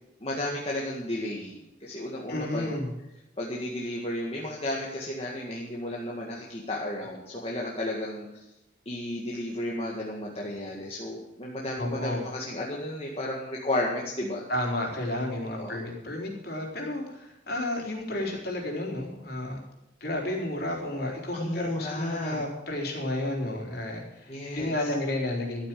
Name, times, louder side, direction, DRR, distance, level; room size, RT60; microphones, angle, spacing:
voice 1, 0.2-2.7 3.4-8.4 8.9-14.4 15.6-15.8 21.3-22.4 24.3-24.7, left 1 dB, 30° left, -4 dB, 1.9 m, -33 dB
voice 2, 2.3-2.9 11.8-12.3 14.5-19.6 20.0-25.7, left 1 dB, 55° left, 0 dB, 3.9 m, -32 dB
13.0 x 8.9 x 7.6 m, 0.92 s
head